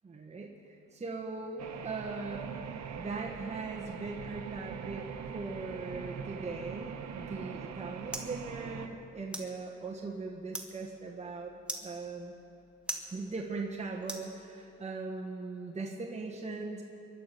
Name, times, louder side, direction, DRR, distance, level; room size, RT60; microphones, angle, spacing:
voice 1, 0.0-2.6 3.0-5.0 5.3-11.5 11.8-12.3 13.1-16.8, right 3 dB, 20° right, -2 dB, 1.6 m, -39 dB
sound 1, 1.6-8.9, right 7 dB, 60° right, 1.2 m, -42 dB
sound 2, 7.3-14.9, right 1 dB, 5° right, 2.0 m, -46 dB
23.0 x 12.0 x 5.3 m, 2.9 s
cardioid pair, 90°, 30 cm